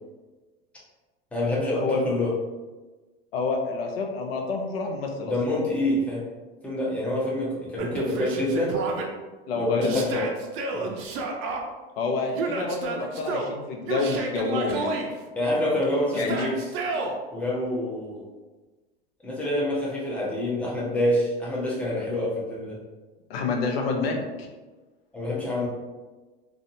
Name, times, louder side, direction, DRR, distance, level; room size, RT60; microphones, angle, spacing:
voice 1, 1.3-2.3 5.2-6.2 6.6-8.8 9.5-10.1 10.7-10.9 15.4-16.6 17.3-18.2 19.2-22.8 25.1-25.7, left 1 dB, 5° left, -6 dB, 0.7 m, -26 dB
voice 2, 3.3-5.3 9.5-10.3 12.0-14.9 16.1-16.5 23.3-24.5, left 3 dB, 75° left, 2 dB, 0.6 m, -28 dB
Yell, 7.8-9.1 9.8-11.6 12.3-13.5 13.8-15.1 16.1-17.1, right 3 dB, 45° right, 0.5 m, -30 dB
2.5 x 2.4 x 2.6 m, 1.3 s
hypercardioid pair, 100°, 30 cm